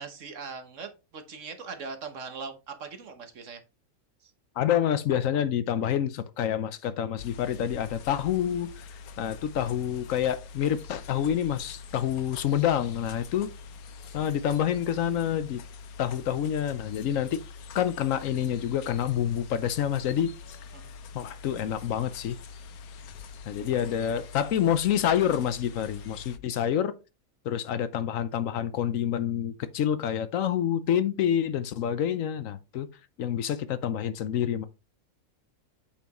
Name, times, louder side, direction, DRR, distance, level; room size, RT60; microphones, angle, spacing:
voice 1, 0.0-3.6 4.2-4.3 20.7-21.0 26.5-26.6, right 5 dB, 60° right, 1.4 m, -41 dB
voice 2, 4.6-8.9 9.2-13.5 14.1-15.6 16.0-17.4 17.7-20.3 21.1-22.4 23.5-26.9 27.4-32.9 33.2-34.7, left 9 dB, 70° left, 1.0 m, -27 dB
sound 1, 7.2-26.4, left 5 dB, 90° left, 1.2 m, -45 dB
8.4 x 5.8 x 3.0 m
omnidirectional pair, 1.5 m